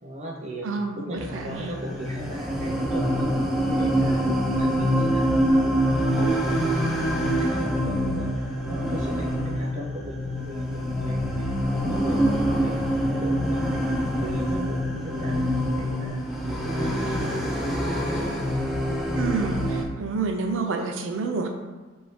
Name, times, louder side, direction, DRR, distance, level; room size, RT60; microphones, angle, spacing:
voice 1, 0.0-0.7 0.9-3.3 3.7-4.2 4.5-5.2 5.5-13.8 14.2-15.5 15.8-16.2 16.5-17.5, equal, 35° right, -2 dB, 0.7 m, -37 dB
voice 2, 0.6-1.7 19.1-21.5, right 4 dB, 85° right, 4 dB, 0.5 m, -28 dB
sound 1, 1.2-19.8, equal, ahead, 0.5 m, -25 dB
4.5 x 2.7 x 3.2 m, 1.3 s
head